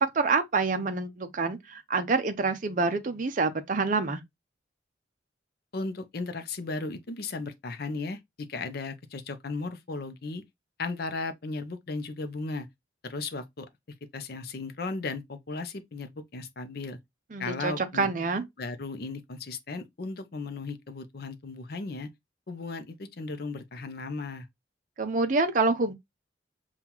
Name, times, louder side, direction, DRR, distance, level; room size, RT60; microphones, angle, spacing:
voice 1, 0.0-4.2 17.3-18.4 25.0-25.9, right 3 dB, 45° right, 0.5 m, -27 dB
voice 2, 5.7-10.4 10.8-12.7 13.0-13.7 14.1-17.0 17.4-18.1 18.6-22.1 22.5-24.5, left 3 dB, 55° left, 0.6 m, -36 dB
5.5 x 2.3 x 2.9 m
head